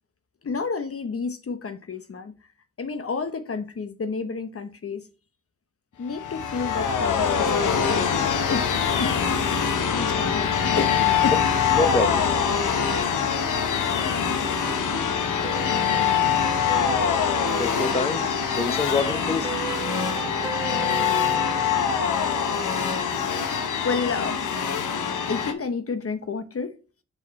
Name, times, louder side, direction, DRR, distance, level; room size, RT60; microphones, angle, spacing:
voice 1, 0.4-2.3 2.8-5.1 6.0-8.7 9.0-9.1 9.9-10.5 10.7-11.3 23.4-24.4 25.2-26.7, left 4 dB, 50° left, 0.9 m, -30 dB
sound 1, 6.1-25.5, left 7 dB, 90° left, 0.9 m, -24 dB
voice 2, 11.7-12.2 17.6-18.2 18.5-19.5, left 3 dB, 20° left, 0.8 m, -25 dB
sound 2, 13.4-22.3, right 3 dB, 15° right, 1.8 m, -36 dB
6.6 x 4.8 x 4.1 m
cardioid pair, 50°, 30 cm